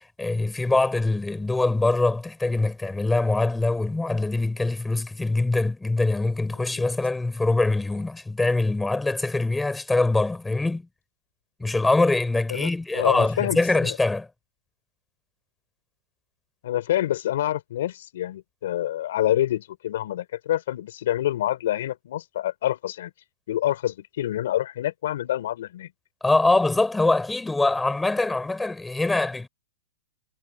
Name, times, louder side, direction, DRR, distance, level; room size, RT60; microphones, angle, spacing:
voice 1, 0.0-10.9 11.6-14.3 26.2-29.5, left 2 dB, 5° left, 5.1 m, -23 dB
voice 2, 12.5-14.0 16.6-23.1 23.5-25.9, left 13 dB, 65° left, 4.3 m, -27 dB
hypercardioid pair, 140°, 0 cm